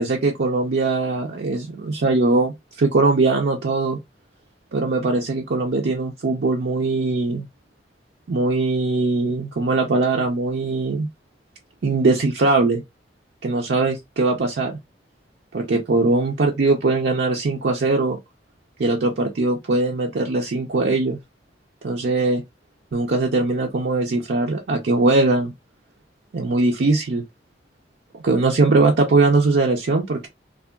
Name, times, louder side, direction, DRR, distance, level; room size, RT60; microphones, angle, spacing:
voice 1, 0.0-4.0 4.7-7.5 8.3-11.1 11.8-12.8 13.4-14.7 15.5-18.2 18.8-21.2 21.8-22.4 22.9-25.5 26.3-27.2 28.2-30.3, right 3 dB, 70° right, 0.5 m, -20 dB
3.4 x 2.1 x 2.2 m
head